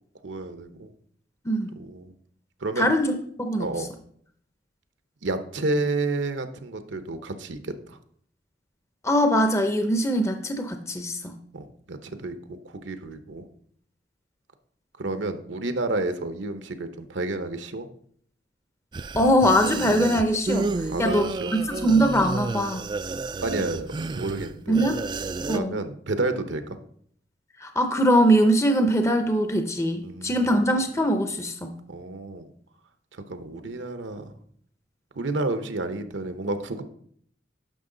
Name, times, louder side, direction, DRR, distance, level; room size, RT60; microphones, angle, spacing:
voice 1, 0.2-0.9 1.7-2.1 2.6-2.9 3.6-3.9 5.2-8.0 11.5-13.5 15.0-17.9 20.9-21.5 23.4-24.8 25.5-26.8 30.0-30.7 31.9-32.5 33.1-34.3 35.2-36.8, right 2 dB, 75° right, 9 dB, 0.9 m, -30 dB
voice 2, 1.5-1.8 2.8-3.7 9.0-11.3 19.2-21.3 21.8-22.9 24.7-25.0 25.5-25.8 27.6-31.7, equal, 15° left, 6 dB, 0.6 m, -22 dB
sound 1, 18.9-25.6, right 3 dB, 25° right, 0.3 m, -31 dB
10.0 x 6.3 x 3.9 m, 0.63 s
head